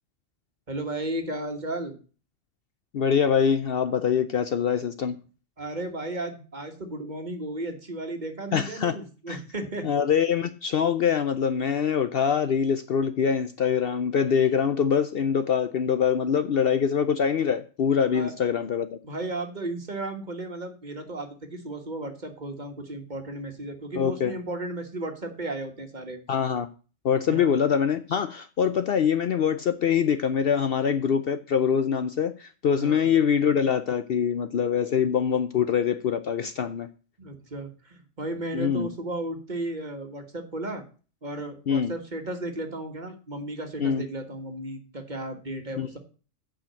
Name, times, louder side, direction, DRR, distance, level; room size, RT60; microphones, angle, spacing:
voice 1, 0.7-2.0 5.6-9.9 18.1-18.3 19.0-26.2 27.3-27.5 32.8-33.1 37.2-40.8 41.2-46.0, right 2 dB, 35° right, 5 dB, 1.7 m, -34 dB
voice 2, 2.9-5.2 8.5-8.9 9.3-9.4 9.8-18.9 24.0-24.3 26.3-26.7 27.0-36.9 38.5-38.9 41.7-41.9 43.8-44.0 45.8-45.9, left 7 dB, 60° left, 11 dB, 0.7 m, -24 dB
8.7 x 5.1 x 7.5 m, 0.37 s
omnidirectional pair, 1.3 m